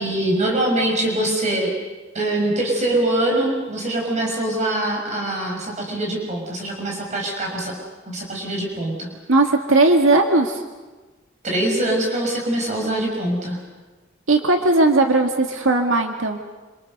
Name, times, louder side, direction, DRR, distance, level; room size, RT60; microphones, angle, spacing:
voice 1, 0.0-1.7 2.1-7.7 8.1-9.1 11.4-13.6, right 1 dB, 35° right, 0 dB, 6.2 m, -23 dB
voice 2, 9.3-10.6 14.3-16.4, right 2 dB, 80° right, 3 dB, 2.1 m, -17 dB
27.5 x 27.0 x 6.8 m, 1.2 s
head